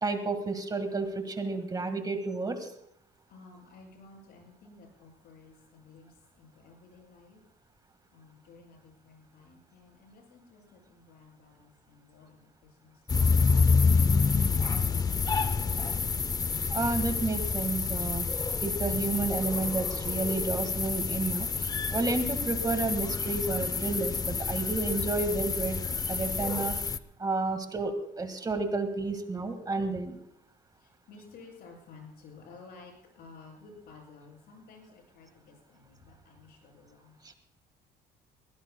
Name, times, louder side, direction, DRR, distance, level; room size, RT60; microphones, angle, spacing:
voice 1, 0.0-2.7 16.7-18.3 18.6-25.8 26.1-26.7 27.2-30.2 37.2-37.3, right 3 dB, 25° right, 8 dB, 1.7 m, -31 dB
voice 2, 3.3-7.4 8.1-13.3 30.8-37.2, left 4 dB, 70° left, 0 dB, 7.4 m, -54 dB
sound 1, 13.1-27.0, left 4 dB, 20° left, 0.5 m, -28 dB
21.5 x 17.5 x 2.3 m, 0.69 s
cardioid pair, 110°, 17 cm